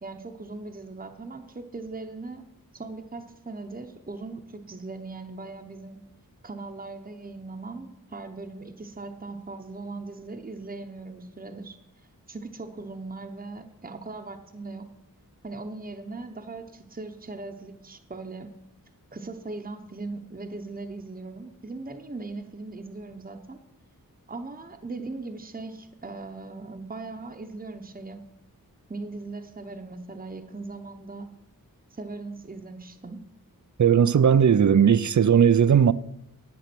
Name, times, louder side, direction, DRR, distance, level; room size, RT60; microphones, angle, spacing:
voice 1, 0.0-2.5 2.7-6.0 6.4-11.8 12.3-14.9 15.4-18.5 19.1-23.6 24.3-28.2 28.9-31.3 31.9-33.2, right 3 dB, 25° right, 0.9 m, -39 dB
voice 2, 33.8-35.9, right 8 dB, 55° right, 0.5 m, -18 dB
10.5 x 8.3 x 6.1 m
wide cardioid pair, 60°, 36 cm